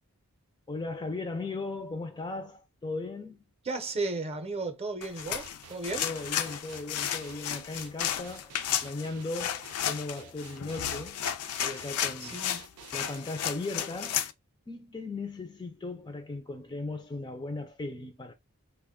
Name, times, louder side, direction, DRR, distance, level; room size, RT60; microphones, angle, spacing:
voice 1, 0.7-3.4 6.0-8.6 8.8-11.2 11.6-12.4 12.9-14.3 14.7-18.3, left 3 dB, 20° left, 0.4 m, -37 dB
voice 2, 3.6-6.1 12.2-12.7, right 3 dB, 30° right, 0.6 m, -34 dB
sound 1, 5.0-14.3, left 10 dB, 85° left, 0.4 m, -33 dB
sound 2, 5.2-13.2, right 9 dB, 85° right, 0.4 m, -51 dB
2.9 x 2.2 x 3.6 m
head